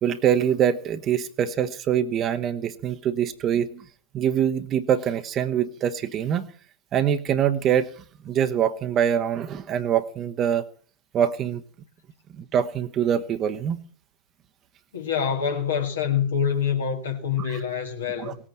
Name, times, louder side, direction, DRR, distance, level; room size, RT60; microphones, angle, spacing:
voice 1, 0.0-3.8 4.1-6.4 6.9-7.9 8.2-10.6 11.1-11.6 12.4-13.8 17.5-17.6 18.2-18.3, right 9 dB, 30° right, 1.1 m, -24 dB
voice 2, 14.9-18.4, left 7 dB, 65° left, 2.3 m, -26 dB
18.5 x 8.7 x 8.6 m
figure-of-eight pair, 90°, 0 cm